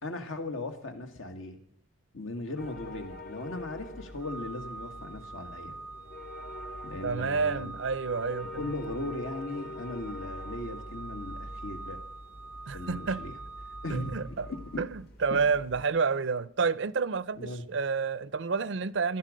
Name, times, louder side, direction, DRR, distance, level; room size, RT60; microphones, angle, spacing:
voice 1, 0.0-1.6 2.1-5.8 6.8-7.7 8.5-12.0 12.7-13.3 13.8-14.8 15.3-15.4 17.4-17.6, left 2 dB, 75° left, 2.1 m, -38 dB
sound 1, 2.6-15.9, left 1 dB, 50° left, 1.5 m, -45 dB
Organ, 4.2-14.9, right 3 dB, 10° right, 0.5 m, -45 dB
voice 2, 7.0-8.7 12.7-13.2 13.9-14.5 14.8-19.2, right 5 dB, 60° right, 0.5 m, -29 dB
17.5 x 12.0 x 5.2 m
head